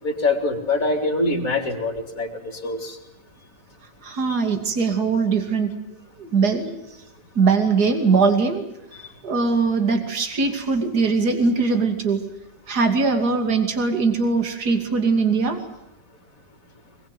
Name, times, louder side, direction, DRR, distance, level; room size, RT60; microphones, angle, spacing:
voice 1, 0.0-3.0 4.3-4.4, left 2 dB, 45° left, 4 dB, 4.2 m, -24 dB
voice 2, 4.0-5.7 6.2-6.8 7.3-8.6 9.2-12.2 12.7-15.6, right 4 dB, 55° right, 5 dB, 3.2 m, -21 dB
23.5 x 22.0 x 9.2 m, 0.87 s
omnidirectional pair, 2.0 m